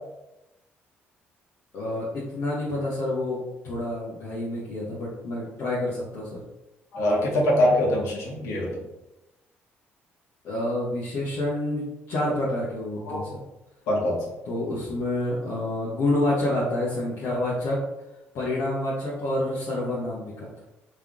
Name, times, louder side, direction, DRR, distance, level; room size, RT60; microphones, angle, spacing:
voice 1, 1.7-3.4 3.6-6.4 10.4-13.3 14.4-17.8 18.3-20.5, left 1 dB, 65° left, -7 dB, 1.1 m, -28 dB
voice 2, 6.9-8.8 13.1-13.2 13.9-14.2, left 1 dB, 80° left, -3 dB, 1.3 m, -23 dB
3.6 x 3.2 x 3.6 m, 0.97 s
cardioid pair, 95°, 5 cm